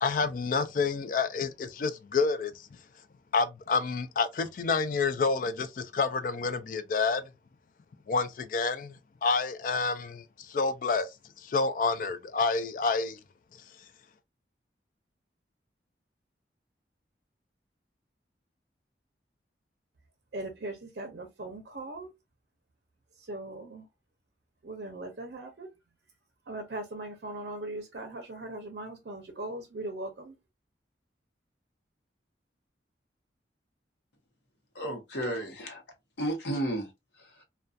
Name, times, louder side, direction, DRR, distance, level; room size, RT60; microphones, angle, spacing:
voice 1, 0.0-2.7 3.3-7.2 8.1-8.9 9.2-11.1 11.4-13.2, left 4 dB, 50° left, 0.3 m, -28 dB
voice 2, 20.3-22.1 23.2-23.9 24.6-25.7 26.5-30.4, right 2 dB, 60° right, 0.5 m, -39 dB
voice 3, 34.7-35.8 36.2-36.9 37.2-37.4, right 1 dB, 75° left, 0.8 m, -33 dB
2.3 x 2.2 x 2.5 m
head